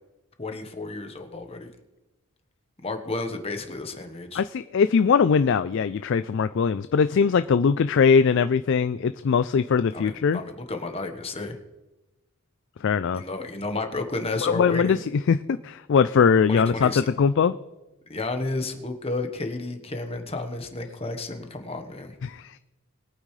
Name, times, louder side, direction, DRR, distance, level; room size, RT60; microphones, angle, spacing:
voice 1, 0.4-1.7 2.8-4.4 9.9-11.6 13.1-15.0 16.5-17.1 18.1-22.2, left 2 dB, 25° left, 5 dB, 1.2 m, -32 dB
voice 2, 4.3-10.4 12.8-13.2 14.4-15.0 15.3-17.5 22.2-22.5, left 6 dB, 55° left, 12 dB, 0.3 m, -21 dB
21.5 x 9.0 x 3.3 m, 1.0 s
head